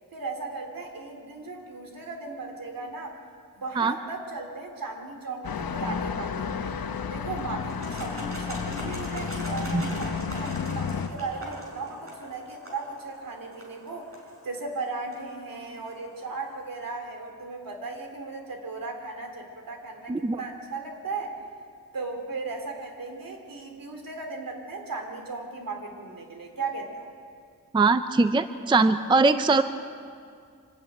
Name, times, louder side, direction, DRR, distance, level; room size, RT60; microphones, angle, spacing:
voice 1, 0.1-3.2 3.5-6.7 7.1-14.1 14.4-21.4 21.9-27.1, right 3 dB, 70° right, 4 dB, 3.0 m, -36 dB
sound 1, 5.4-11.1, left 6 dB, 80° left, 1.0 m, -32 dB
sound 2, 7.6-16.7, equal, 40° right, 5.2 m, -43 dB
voice 2, 27.7-29.6, right 3 dB, 15° right, 11 dB, 0.4 m, -21 dB
25.0 x 12.5 x 9.1 m, 2.3 s
wide cardioid pair, 180°, 35 cm